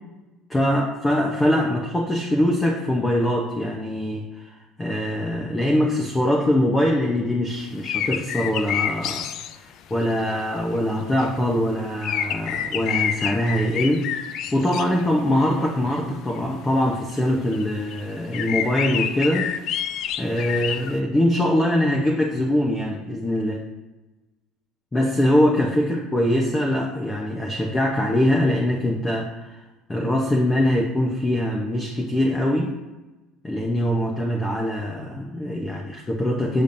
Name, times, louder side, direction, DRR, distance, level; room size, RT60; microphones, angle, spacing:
voice 1, 0.5-9.3 9.9-19.5 20.2-23.6 24.9-29.5 29.9-32.7 33.4-36.6, left 1 dB, 10° left, -1 dB, 0.7 m, -23 dB
sound 1, 7.6-9.6 11.2-11.3 12.0-15.0 15.3-16.0 16.4-16.5 17.1-17.2 17.5-17.6 17.9-18.0 18.3-20.9, left 9 dB, 50° left, 0.4 m, -28 dB
6.9 x 6.8 x 2.6 m, 1.1 s
cardioid pair, 160°, 0 cm